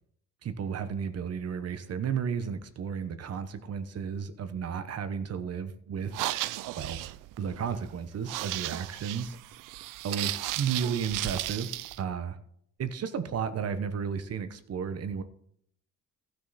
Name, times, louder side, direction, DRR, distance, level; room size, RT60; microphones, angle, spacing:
voice 1, 0.4-6.1 6.8-7.0 7.4-9.4 10.0-12.4 12.8-15.2, right 7 dB, 50° right, 11 dB, 1.1 m, -33 dB
sound 1, 6.0-12.0, right 16 dB, 85° right, 0.5 m, -35 dB
15.0 x 6.5 x 4.2 m, 0.67 s
cardioid pair, 115°, 31 cm